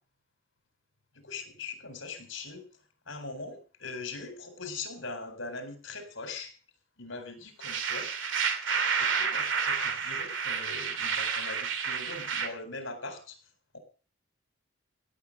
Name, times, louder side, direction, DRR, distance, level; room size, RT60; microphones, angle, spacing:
voice 1, 1.2-2.7 3.1-6.5 7.0-8.1 9.0-13.4, left 3 dB, 75° left, 8 dB, 4.3 m, -41 dB
sound 1, 7.6-12.5, right 6 dB, 70° right, 2.6 m, -30 dB
17.0 x 9.0 x 6.4 m, 0.38 s
head